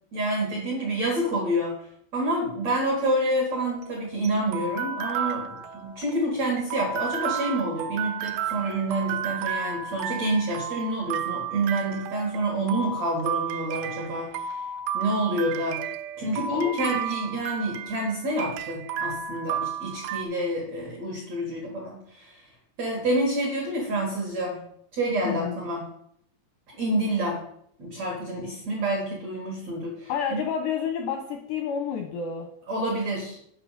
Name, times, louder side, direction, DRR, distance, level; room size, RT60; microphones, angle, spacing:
voice 1, 0.1-1.8 2.1-14.6 14.9-15.8 16.2-22.5 22.8-24.6 24.9-25.8 26.7-27.4 27.8-30.4 32.7-33.4, right 1 dB, 70° right, -2 dB, 1.6 m, -28 dB
sound 1, 3.6-20.2, right 7 dB, 85° right, 2.7 m, -33 dB
voice 2, 16.5-17.0 25.2-25.6 30.1-32.5, left 7 dB, 85° left, 4 dB, 2.4 m, -30 dB
8.9 x 5.7 x 5.7 m, 0.70 s
omnidirectional pair, 5.9 m